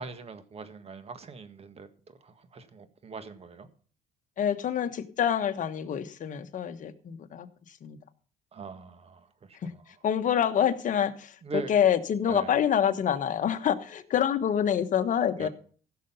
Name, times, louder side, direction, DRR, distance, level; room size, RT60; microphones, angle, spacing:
voice 1, 0.0-3.7 8.5-10.0 11.4-11.7 12.3-12.6 15.4-15.5, right 4 dB, 35° right, 1.7 m, -41 dB
voice 2, 4.4-7.5 7.8-8.0 9.6-9.7 10.0-15.5, left 9 dB, 50° left, 1.3 m, -26 dB
15.5 x 6.9 x 5.6 m
cardioid pair, 110°, 17 cm